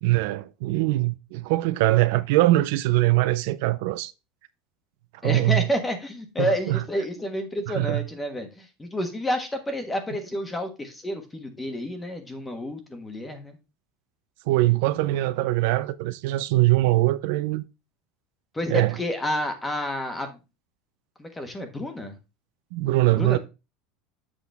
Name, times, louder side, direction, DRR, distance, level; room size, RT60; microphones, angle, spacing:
voice 1, 0.0-4.1 5.2-5.7 6.4-6.8 7.7-8.1 14.5-17.6 18.7-19.0 22.7-23.4, right 18 dB, 70° right, 0.5 m, -22 dB
voice 2, 5.2-13.6 18.5-20.4 21.2-22.1 23.2-23.4, equal, 10° left, 1.4 m, -30 dB
7.8 x 6.0 x 3.5 m
cardioid pair, 160°, 0 cm